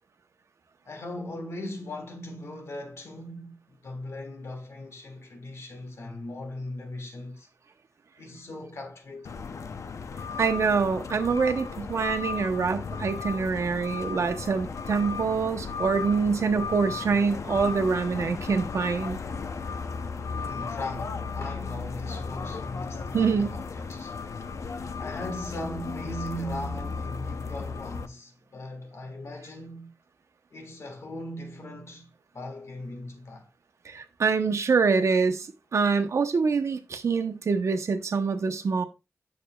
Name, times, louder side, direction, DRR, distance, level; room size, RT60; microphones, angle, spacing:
voice 1, 0.9-7.5 8.2-9.4 20.3-24.2 24.5-29.9 30.5-33.5, left 1 dB, 60° left, 1.5 m, -39 dB
sound 1, 9.2-28.1, left 5 dB, 80° left, 0.6 m, -35 dB
voice 2, 10.4-19.2 23.1-23.6 33.8-38.8, right 5 dB, 70° right, 0.8 m, -25 dB
8.9 x 6.7 x 2.3 m
wide cardioid pair, 130°, 5 cm